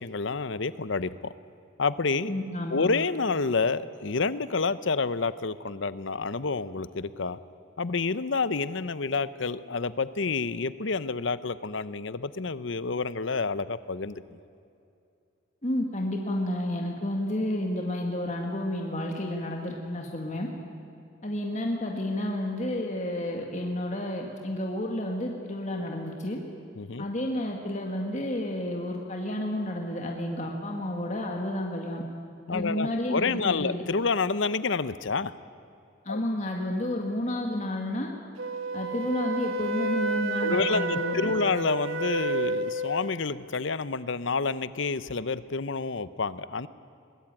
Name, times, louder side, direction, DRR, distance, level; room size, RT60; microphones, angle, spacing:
voice 1, 0.0-1.3 1.8-2.3 2.7-7.4 7.8-14.4 26.8-27.1 32.5-35.3 36.1-36.2 40.4-46.7, left 4 dB, 65° left, 15 dB, 0.8 m, -29 dB
voice 2, 2.3-2.9 15.6-20.5 21.2-26.4 27.0-32.0 32.5-33.8 36.1-38.1 38.7-41.3, left 1 dB, 35° left, 1 dB, 1.9 m, -31 dB
Wind instrument woodwind instrument, 38.4-43.1, right 2 dB, 80° right, 1.4 m, -30 dB
22.0 x 20.5 x 9.0 m, 2.5 s
head